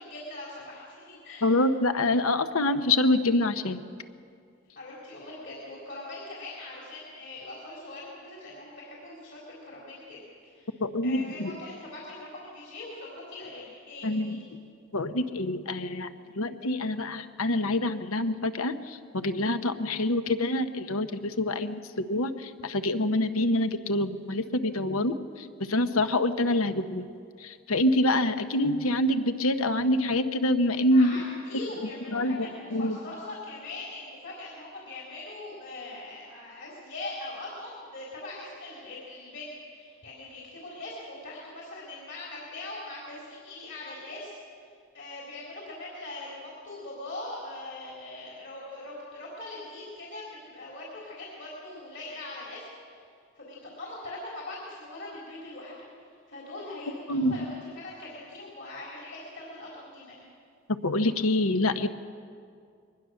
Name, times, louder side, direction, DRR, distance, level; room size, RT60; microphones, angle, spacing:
voice 1, 0.0-1.5 4.7-10.2 10.4-10.7 11.0-14.4 30.9-53.1 53.3-55.7 56.0-60.2, left 2 dB, 55° left, -5 dB, 4.0 m, -41 dB
voice 2, 1.4-3.8 10.8-11.6 14.0-14.4 14.9-27.1 27.4-31.2 32.1-33.0 57.1-57.4 60.7-61.9, left 1 dB, 85° left, 9 dB, 1.0 m, -26 dB
22.0 x 20.0 x 6.5 m, 2.2 s
head